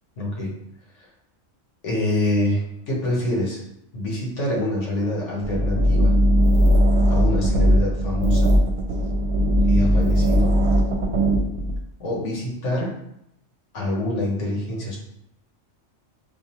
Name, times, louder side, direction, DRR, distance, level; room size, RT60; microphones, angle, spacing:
voice 1, 0.2-0.5 1.0-1.1 1.8-3.6 3.9-6.1 7.1-8.5 9.7-10.5 12.0-12.9 13.7-15.0, left 1 dB, 70° left, -3 dB, 1.4 m, -26 dB
sound 1, 5.4-11.8, equal, 65° right, 0.8 m, -19 dB
5.1 x 2.4 x 2.9 m, 0.78 s
omnidirectional pair, 1.3 m